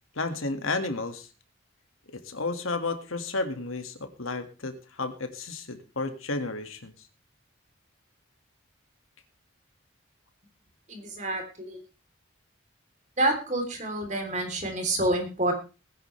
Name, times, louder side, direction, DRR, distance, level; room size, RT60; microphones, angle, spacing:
voice 1, 0.1-1.3 2.1-6.9, left 3 dB, 80° left, 8 dB, 1.9 m, -32 dB
voice 2, 10.9-11.8 13.2-15.5, right 1 dB, 35° right, 4 dB, 3.3 m, -28 dB
20.0 x 10.5 x 3.3 m, 0.31 s
head